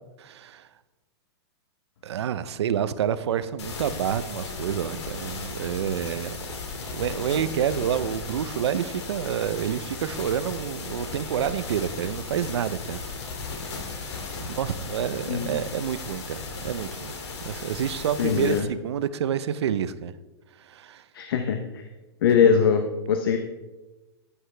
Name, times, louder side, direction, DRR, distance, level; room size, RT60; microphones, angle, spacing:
voice 1, 0.2-0.7 2.0-6.4 6.9-13.0 14.4-17.1 17.4-20.1 20.6-21.0 22.4-22.5, right 9 dB, 75° right, 14 dB, 0.6 m, -28 dB
sound 1, 3.6-18.6, left 4 dB, 80° left, 2.5 m, -36 dB
voice 2, 18.2-18.7 21.1-21.8 22.2-23.4, left 7 dB, 55° left, 6 dB, 0.8 m, -22 dB
12.5 x 8.5 x 3.3 m, 1.1 s
supercardioid pair, 175°, 14 cm